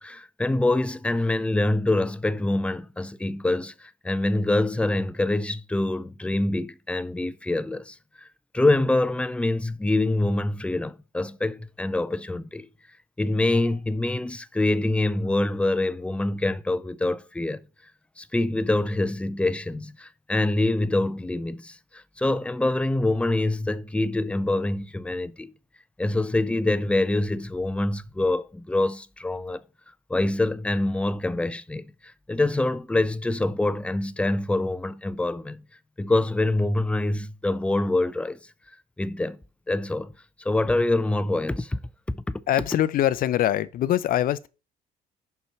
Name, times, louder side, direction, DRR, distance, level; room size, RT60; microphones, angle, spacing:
voice 1, 0.0-8.3 8.5-12.7 13.2-17.6 18.2-25.5 26.0-29.6 30.1-35.6 36.0-38.4 39.0-39.4 39.7-40.1 40.4-41.8 42.1-42.4, left 2 dB, 5° left, 0.4 m, -25 dB
voice 2, 42.5-44.5, left 12 dB, 55° left, 0.5 m, -23 dB
5.9 x 5.5 x 4.5 m
cardioid pair, 110°, 17 cm